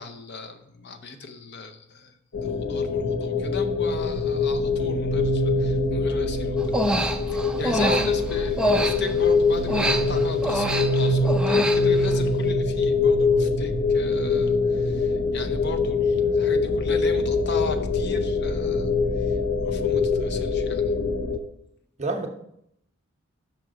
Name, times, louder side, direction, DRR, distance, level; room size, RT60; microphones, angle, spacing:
voice 1, 0.0-6.6 7.3-18.9 19.2-19.4 19.6-20.9, left 3 dB, 55° left, 8 dB, 0.7 m, -37 dB
sound 1, 2.3-21.4, left 3 dB, 90° left, 0.8 m, -23 dB
Human voice, 6.6-9.3 9.7-12.2, right 1 dB, 5° right, 0.4 m, -26 dB
voice 2, 7.8-8.0 22.0-22.3, right 2 dB, 35° right, 4 dB, 0.8 m, -26 dB
6.2 x 6.0 x 4.9 m, 0.74 s
head